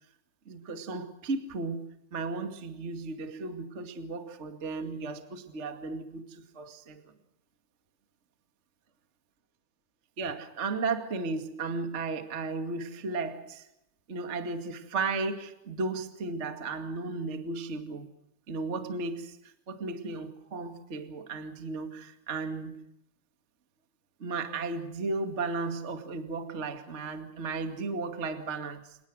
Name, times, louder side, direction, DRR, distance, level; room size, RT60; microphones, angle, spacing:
voice 1, 0.4-7.1 10.2-13.7 14.1-18.1 18.5-22.9 24.2-29.0, right 3 dB, 50° right, 6 dB, 0.8 m, -35 dB
29.0 x 18.5 x 6.4 m, 0.81 s
omnidirectional pair, 5.4 m